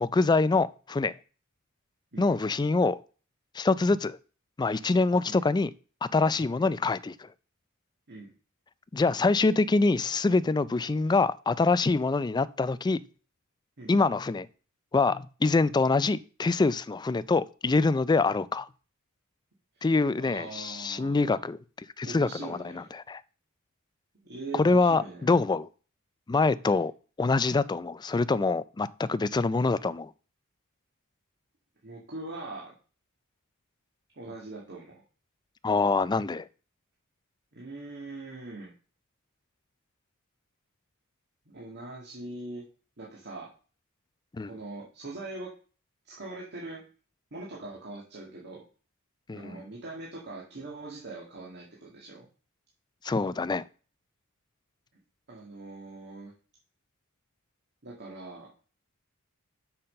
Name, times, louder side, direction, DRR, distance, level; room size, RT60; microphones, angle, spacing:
voice 1, 0.0-1.1 2.2-3.0 3.5-4.2 4.6-5.7 6.0-7.3 8.9-13.0 13.9-14.5 14.9-18.7 19.8-23.2 24.5-25.7 26.3-26.9 27.2-30.1 35.6-36.5 44.4-44.5 49.3-49.6 53.0-53.6, left 3 dB, 20° left, 0.3 m, -25 dB
voice 2, 20.2-21.4 22.0-22.9 24.2-25.2 31.8-32.7 34.1-35.0 37.5-38.7 41.5-42.6 43.0-43.5 44.5-45.5 46.1-46.8 47.3-48.6 49.3-52.3 55.3-56.3 57.8-58.5, right 2 dB, 50° right, 1.9 m, -42 dB
6.7 x 5.7 x 6.5 m
head